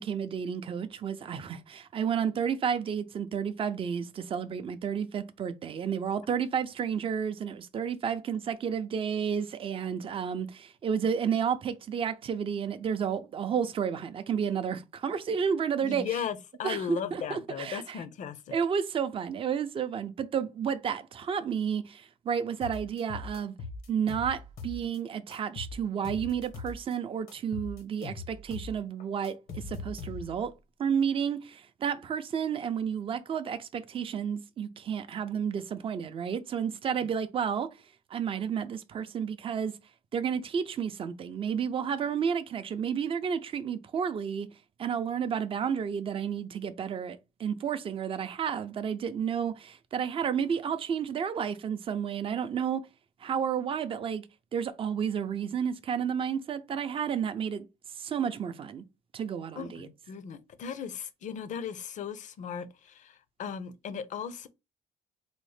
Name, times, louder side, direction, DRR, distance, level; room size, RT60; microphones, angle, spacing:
voice 1, 0.0-16.1 16.6-18.0 18.5-23.6 23.9-30.5 30.8-37.7 38.1-39.8 40.1-44.5 44.8-52.9 53.2-54.2 54.5-57.7 58.0-58.8 59.1-59.9, right 7 dB, 35° right, 0.4 m, -31 dB
voice 2, 15.8-18.6 59.6-64.5, left 8 dB, 55° left, 0.5 m, -37 dB
sound 1, 22.6-25.0 25.3-27.0 27.3-30.5, left 3 dB, 85° left, 0.9 m, -41 dB
4.0 x 2.0 x 3.2 m
cardioid pair, 105°, 15 cm